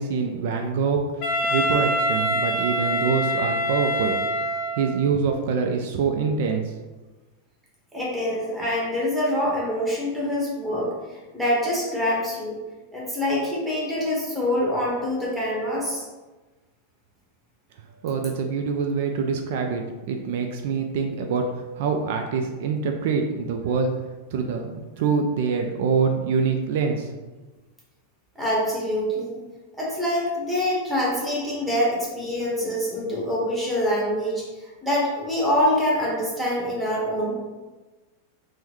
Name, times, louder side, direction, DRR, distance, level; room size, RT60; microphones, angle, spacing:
voice 1, 0.0-4.2 4.7-6.7 18.0-19.8 20.1-24.0 24.3-27.2, right 5 dB, 65° right, 4 dB, 0.3 m, -25 dB
Wind instrument woodwind instrument, 1.2-5.0, equal, 40° left, 0.6 m, -25 dB
voice 2, 7.9-12.6 12.9-16.0 28.3-29.4 29.8-37.4, left 1 dB, 5° right, -6 dB, 1.1 m, -25 dB
3.6 x 2.1 x 3.0 m, 1.2 s
supercardioid pair, 135°, 0 cm